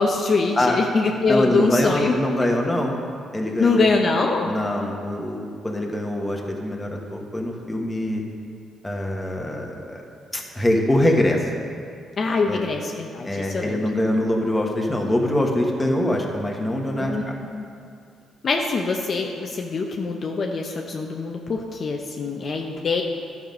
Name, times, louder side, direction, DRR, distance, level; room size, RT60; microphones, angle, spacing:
voice 1, 0.0-2.2 3.6-4.5 12.2-13.8 17.0-17.2 17.5-17.6 18.4-23.0, left 4 dB, 50° left, 1 dB, 0.8 m, -23 dB
voice 2, 1.3-2.9 3.3-3.8 4.4-8.2 8.8-10.0 10.3-11.5 12.5-12.6 13.2-17.3, left 1 dB, 10° left, 0 dB, 1.4 m, -23 dB
12.0 x 6.0 x 5.3 m, 2.4 s
cardioid pair, 90°, 0 cm